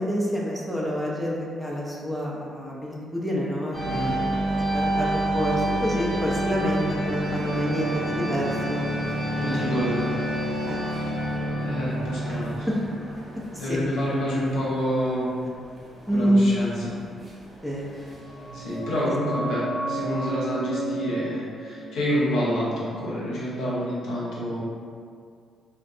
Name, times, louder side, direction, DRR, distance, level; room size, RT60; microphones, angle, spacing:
voice 1, 0.0-8.9 10.7-10.8 12.3-12.4 13.7-13.8 16.1-16.5 17.6-17.9, equal, 10° right, -4 dB, 0.6 m, -27 dB
sound 1, 3.7-19.1, right 1 dB, 25° right, 0.9 m, -29 dB
voice 2, 3.8-4.1 9.4-10.1 11.6-12.7 13.6-15.4 16.1-17.0 18.5-24.6, equal, 70° left, -8 dB, 0.7 m, -28 dB
sound 2, 18.0-23.4 23.7-23.8, right 2 dB, 70° right, 0.7 m, -33 dB
2.3 x 2.1 x 2.6 m, 2.2 s
hypercardioid pair, 45°, 0 cm